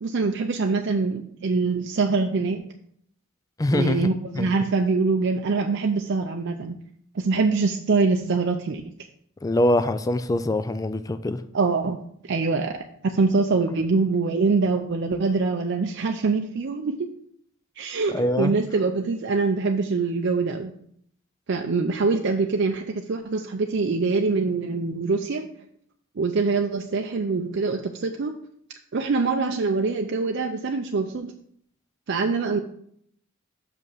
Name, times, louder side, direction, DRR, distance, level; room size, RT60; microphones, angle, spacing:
voice 1, 0.0-2.7 3.7-6.8 7.1-8.8 11.5-12.0 12.2-12.8 13.0-17.1 17.8-20.7 21.5-25.5 26.2-28.3 28.9-31.3 32.1-32.6, right 4 dB, 60° right, 4 dB, 0.5 m, -24 dB
voice 2, 3.6-4.1 4.3-4.5 9.4-11.4 18.1-18.5, left 1 dB, 15° left, 12 dB, 0.3 m, -23 dB
6.2 x 5.4 x 5.5 m, 0.67 s
head